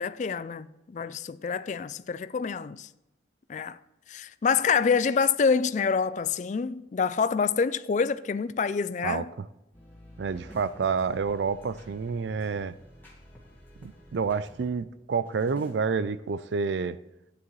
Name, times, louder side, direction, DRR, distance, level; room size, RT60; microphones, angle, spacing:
voice 1, 0.0-2.9 3.5-3.8 4.1-9.3, left 5 dB, 40° left, 0.3 m, -27 dB
voice 2, 9.0-9.5 10.2-12.7 13.8-17.0, right 5 dB, 70° right, 0.4 m, -29 dB
sound 1, 9.7-14.7 15.2-15.7, left 1 dB, 10° left, 2.1 m, -51 dB
13.0 x 9.7 x 3.2 m
head